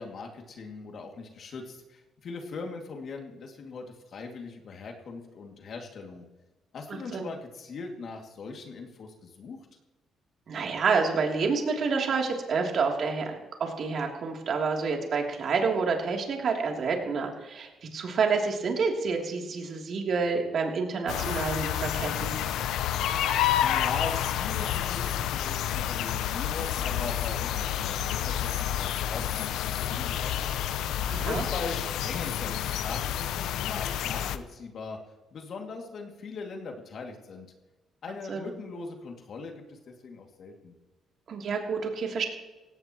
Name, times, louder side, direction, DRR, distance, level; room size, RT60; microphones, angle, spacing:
voice 1, 0.0-6.2 6.7-9.6 23.6-35.0 35.3-37.5 38.0-40.7, left 4 dB, 60° left, 2 dB, 2.5 m, -40 dB
voice 2, 6.9-7.3 10.5-13.3 13.6-22.4 31.1-31.4 38.3-38.5 41.3-42.3, right 4 dB, 60° right, 1 dB, 3.1 m, -28 dB
sound 1, 21.1-34.4, left 10 dB, 85° left, 0.7 m, -29 dB
17.5 x 16.5 x 3.1 m, 1.1 s
cardioid pair, 90°, 0 cm